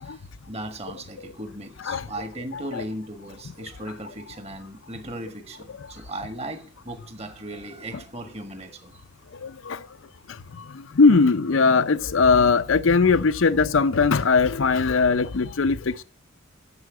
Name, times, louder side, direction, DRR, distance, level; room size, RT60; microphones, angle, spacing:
voice 1, 0.0-9.0, right 1 dB, 30° right, 1.7 m, -37 dB
voice 2, 9.4-9.8 11.0-16.0, left 4 dB, 70° left, 0.6 m, -19 dB
11.0 x 7.6 x 7.6 m
head